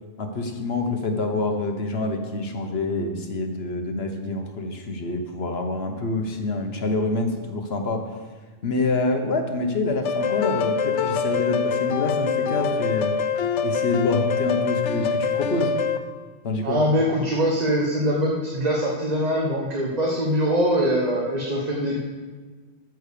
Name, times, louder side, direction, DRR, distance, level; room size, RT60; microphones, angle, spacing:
voice 1, 0.2-8.0 8.6-13.2 13.6-15.7 16.4-16.8, left 3 dB, 60° left, 4 dB, 1.3 m, -26 dB
sound 1, 10.1-16.0, left 6 dB, 75° left, 0.9 m, -24 dB
voice 2, 16.6-22.0, equal, 35° right, -2 dB, 1.2 m, -23 dB
13.5 x 4.6 x 6.8 m, 1.4 s
omnidirectional pair, 1.2 m